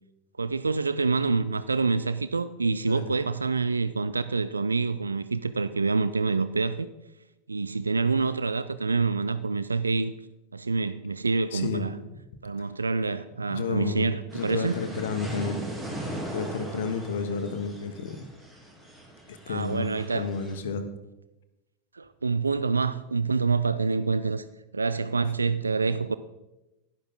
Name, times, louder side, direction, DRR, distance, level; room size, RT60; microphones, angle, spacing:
voice 1, 0.4-6.9 7.5-10.1 10.5-11.9 12.4-14.8 19.5-20.3 21.9-24.4 24.7-26.1, right 4 dB, 75° right, 0.3 m, -27 dB
voice 2, 11.5-11.9 12.6-12.7 13.5-15.6 16.3-18.3 19.3-20.9, left 5 dB, 60° left, 1.2 m, -31 dB
sound 1, 14.3-20.6, right 1 dB, 15° right, 2.7 m, -39 dB
12.0 x 11.0 x 3.9 m
figure-of-eight pair, 90°, 0 cm